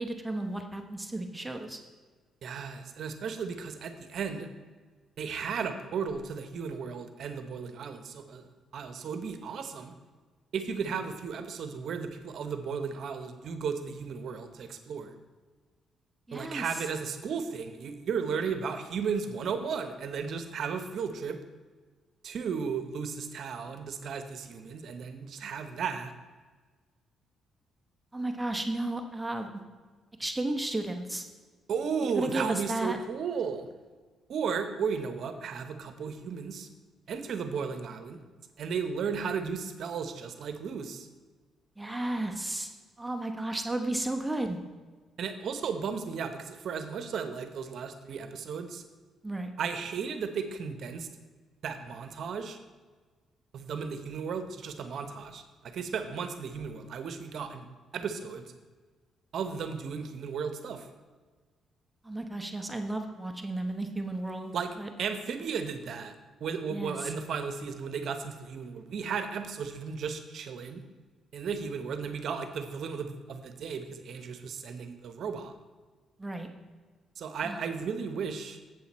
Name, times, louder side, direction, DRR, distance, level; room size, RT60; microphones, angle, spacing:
voice 1, 0.0-1.8 16.3-16.8 28.1-29.5 30.2-31.3 32.1-33.0 41.8-42.7 43.0-44.6 49.2-49.5 62.0-64.9 66.7-67.1 76.2-76.5 77.4-77.6, right 2 dB, 10° right, 4 dB, 0.9 m, -33 dB
voice 2, 2.4-4.5 5.2-10.0 10.5-15.1 16.3-21.4 22.2-26.1 31.7-33.7 34.3-36.7 37.1-38.2 38.6-41.1 45.2-48.8 49.6-51.1 51.6-52.6 53.5-57.7 57.9-58.5 59.3-60.9 64.5-66.1 66.4-70.8 71.3-75.5 77.2-78.6, right 6 dB, 65° right, 9 dB, 0.9 m, -35 dB
7.9 x 7.7 x 4.2 m, 1.4 s
cardioid pair, 90°, 0 cm